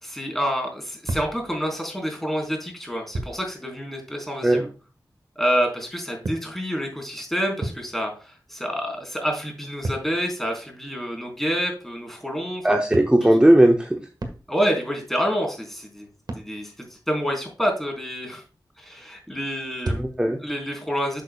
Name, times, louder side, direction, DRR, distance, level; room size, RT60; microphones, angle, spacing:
voice 1, 0.0-4.7 5.4-12.8 13.2-13.3 14.5-16.1 16.3-18.4 18.8-20.1 20.4-21.2, equal, 5° left, 0 dB, 4.1 m, -28 dB
sound 1, 1.0-2.1 3.1-3.5 5.6-8.3 8.6-11.3 12.9-14.9 15.3-15.7 16.3-16.6 19.7-20.4, right 2 dB, 60° right, 1.6 m, -34 dB
voice 2, 12.6-14.0 20.0-20.4, right 1 dB, 15° right, 4 dB, 0.9 m, -17 dB
11.0 x 6.7 x 2.3 m, 0.35 s
wide cardioid pair, 65°, 8 cm